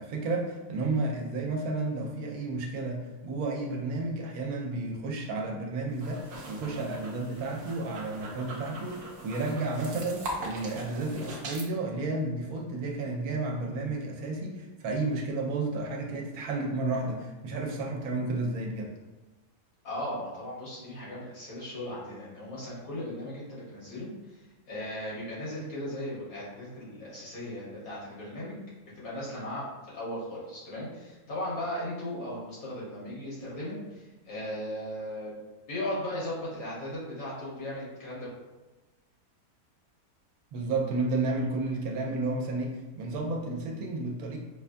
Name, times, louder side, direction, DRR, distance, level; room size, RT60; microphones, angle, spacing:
voice 1, 0.0-18.9 40.5-44.4, right 2 dB, 75° right, 1 dB, 1.0 m, -32 dB
sound 1, 5.9-11.7, right 1 dB, 55° right, 0.8 m, -41 dB
voice 2, 19.8-24.4 24.7-28.5 28.9-35.3 35.7-38.3, left 1 dB, 65° left, -7 dB, 1.8 m, -37 dB
5.1 x 2.2 x 2.5 m, 1.1 s
omnidirectional pair, 1.6 m